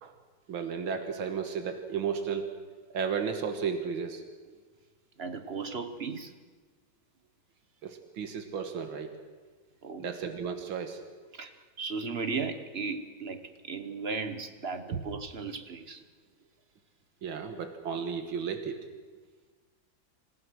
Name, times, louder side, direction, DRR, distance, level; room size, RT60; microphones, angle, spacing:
voice 1, 0.5-2.5 2.9-4.2 7.8-9.1 10.0-11.0 14.9-15.0 17.2-18.8, right 6 dB, 85° right, 7 dB, 2.2 m, -33 dB
voice 2, 5.2-6.4 9.8-10.1 11.3-16.0, right 4 dB, 40° right, 9 dB, 1.0 m, -36 dB
26.5 x 16.0 x 6.3 m, 1.4 s
omnidirectional pair, 2.2 m